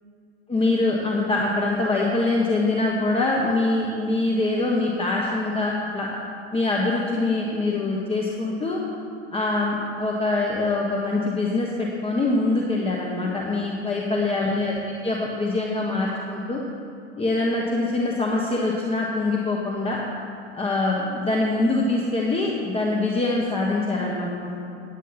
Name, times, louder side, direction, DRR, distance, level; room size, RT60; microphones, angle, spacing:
voice 1, 0.5-6.1 6.5-8.8 9.3-16.6 17.2-20.0 20.5-24.6, left 2 dB, 15° left, -3 dB, 1.3 m, -24 dB
10.0 x 8.4 x 5.8 m, 2.6 s
hypercardioid pair, 110°, 35 cm